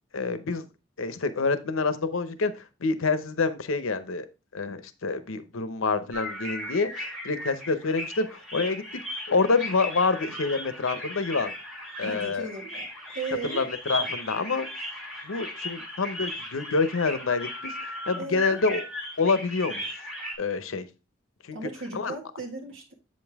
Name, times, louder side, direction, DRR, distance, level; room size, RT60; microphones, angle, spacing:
voice 1, 0.1-0.6 1.0-2.5 2.8-4.3 4.5-9.0 9.3-11.5 12.0-12.4 13.5-14.7 15.2-17.7 18.1-18.8 19.2-19.8 20.4-20.9 21.4-21.6 21.9-22.1, left 4 dB, 80° left, 12 dB, 0.7 m, -27 dB
sound 1, 6.1-20.3, left 1 dB, ahead, 3.0 m, -36 dB
voice 2, 12.0-12.9 13.1-13.6 18.1-18.6 21.5-22.9, right 3 dB, 70° right, 1 dB, 1.7 m, -36 dB
7.8 x 5.3 x 3.5 m, 0.29 s
head